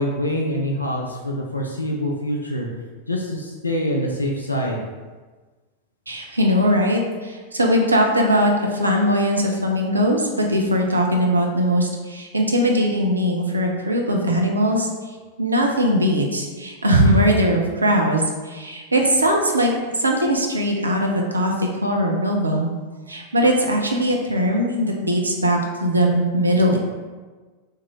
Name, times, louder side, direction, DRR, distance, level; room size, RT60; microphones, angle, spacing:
voice 1, 0.0-2.7 3.1-4.8, equal, 85° left, -1 dB, 0.4 m, -25 dB
voice 2, 6.1-14.9 15.4-22.7 23.1-26.8, equal, 80° right, 1 dB, 0.5 m, -20 dB
3.0 x 2.7 x 3.7 m, 1.3 s
figure-of-eight pair, 90°, 0 cm